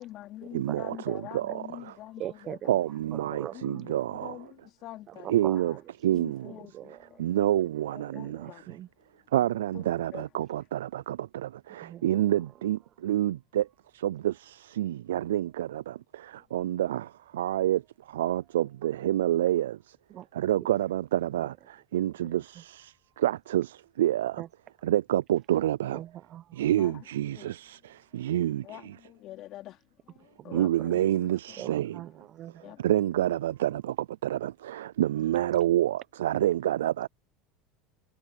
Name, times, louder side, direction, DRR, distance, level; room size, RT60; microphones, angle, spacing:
voice 1, 0.0-2.6 3.3-4.5 4.8-5.4 6.1-7.2 8.1-8.6 9.7-9.8 10.1-10.2 26.8-26.9 27.4-27.5 28.6-29.8 30.4-31.1 32.6-32.8, left 15 dB, 55° left, 3.1 m, -44 dB
voice 2, 0.5-2.0 2.7-4.5 5.3-5.8 6.0-6.5 6.9-8.8 9.3-13.7 13.9-20.0 20.3-24.4 24.8-26.0 26.5-29.0 30.5-32.0 32.8-37.1, right 12 dB, 85° right, 0.3 m, -28 dB
voice 3, 2.2-2.7 3.1-3.9 5.1-5.6 6.7-7.1 8.1-8.9 11.8-12.0 20.1-20.3 22.2-22.3 24.4-24.5 25.9-26.6 30.4-31.0 31.6-32.7, right 12 dB, 45° right, 0.9 m, -42 dB
hypercardioid pair, 95°, 0 cm